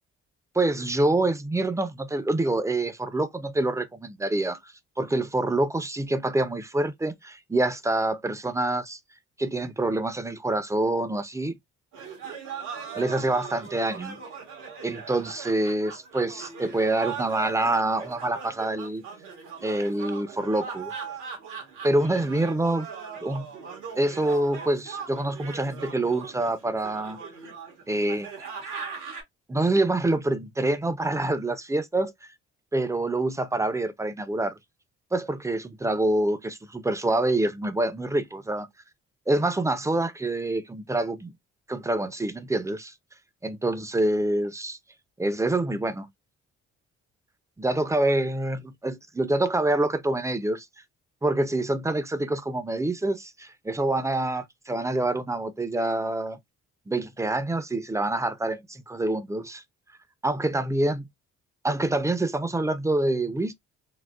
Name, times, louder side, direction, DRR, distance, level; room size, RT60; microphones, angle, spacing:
voice 1, 0.5-4.7 5.0-9.0 9.4-11.6 13.0-14.2 14.8-19.0 19.6-20.9 21.5-22.9 23.2-23.4 24.0-27.2 27.9-28.3 29.5-32.1 32.7-34.6 35.1-38.7 39.3-41.3 41.7-42.9 43.4-44.8 45.2-46.1 47.6-50.7 51.2-56.4 56.9-59.6 60.2-61.1 61.6-63.5, right 2 dB, 10° right, 0.5 m, -26 dB
sound 1, 11.9-29.2, right 6 dB, 85° right, 1.7 m, -39 dB
3.7 x 2.0 x 2.4 m
supercardioid pair, 65°, 30 cm